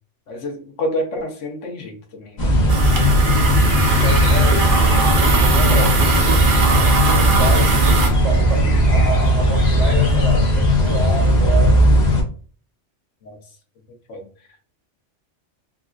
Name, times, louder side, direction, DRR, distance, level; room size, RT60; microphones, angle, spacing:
voice 1, 0.3-2.5 4.2-4.6 13.2-13.4 14.1-14.2, left 1 dB, 85° left, 1.1 m, -29 dB
sound 1, 2.4-12.2, equal, 45° left, 0.7 m, -16 dB
sound 2, 2.7-8.1, right 3 dB, 55° right, 0.7 m, -20 dB
voice 2, 4.0-12.1, right 2 dB, 75° right, 1.4 m, -29 dB
3.9 x 2.4 x 2.3 m
omnidirectional pair, 1.2 m